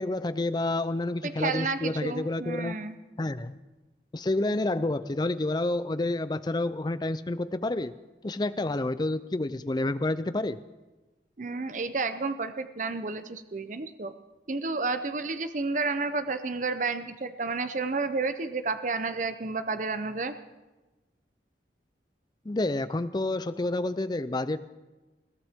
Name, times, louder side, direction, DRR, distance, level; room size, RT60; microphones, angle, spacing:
voice 1, 0.0-2.8 3.2-3.6 4.1-7.9 8.2-10.6 22.4-24.6, left 2 dB, 25° left, 14 dB, 0.4 m, -29 dB
voice 2, 1.2-3.0 11.4-14.1 14.5-20.4, right 3 dB, 45° right, 10 dB, 0.7 m, -31 dB
21.5 x 16.0 x 3.6 m, 1.1 s
head